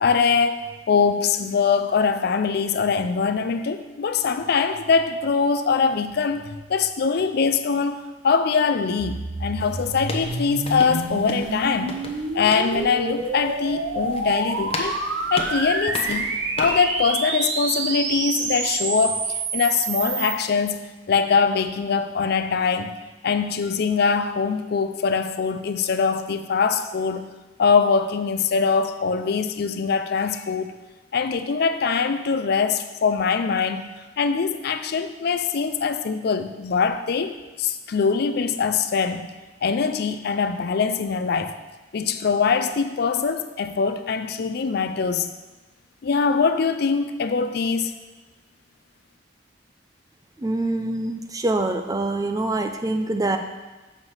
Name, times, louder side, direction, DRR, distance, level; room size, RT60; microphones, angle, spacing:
voice 1, 0.0-12.1 12.3-14.9 15.3-23.0 23.2-27.3 27.6-30.7 31.1-39.3 39.6-41.5 41.9-45.3 46.0-47.9, left 5 dB, 60° left, 9 dB, 0.4 m, -23 dB
sound 1, 9.0-20.4, right 3 dB, 75° right, 0.8 m, -28 dB
sound 2, 9.6-17.0, left 2 dB, 30° left, 0.8 m, -36 dB
voice 2, 50.4-53.4, right 2 dB, 20° right, 6 dB, 0.5 m, -25 dB
6.3 x 4.9 x 5.6 m, 1.2 s
head